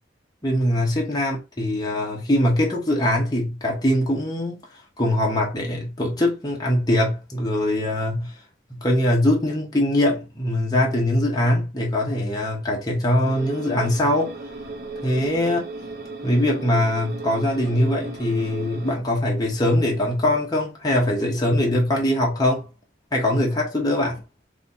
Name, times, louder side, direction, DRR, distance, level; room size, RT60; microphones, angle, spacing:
voice 1, 0.4-4.6 5.0-8.3 8.7-14.3 15.0-15.6 16.2-22.7 23.1-24.1, left 1 dB, 25° left, 1.1 m, -22 dB
sound 1, 13.2-19.0, right 2 dB, 55° right, 0.7 m, -35 dB
3.4 x 2.8 x 4.0 m
head